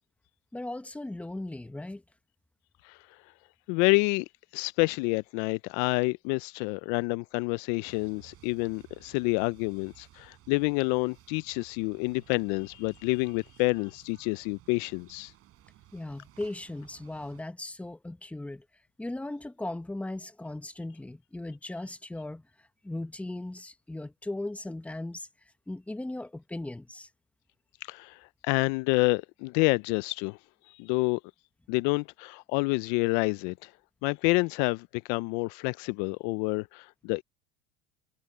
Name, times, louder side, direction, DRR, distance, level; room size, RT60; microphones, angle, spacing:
voice 1, 0.5-2.0 15.9-18.6 19.0-22.4 22.8-25.3 25.7-27.1, left 2 dB, 5° left, 1.0 m, -37 dB
voice 2, 3.7-4.3 4.5-15.3 27.8-30.4 30.7-31.2 31.7-33.7 34.0-37.2, left 27 dB, 60° left, 0.5 m, -28 dB
sound 1, 7.8-17.4, right 14 dB, 45° right, 3.6 m, -57 dB
supercardioid pair, 140°, 33 cm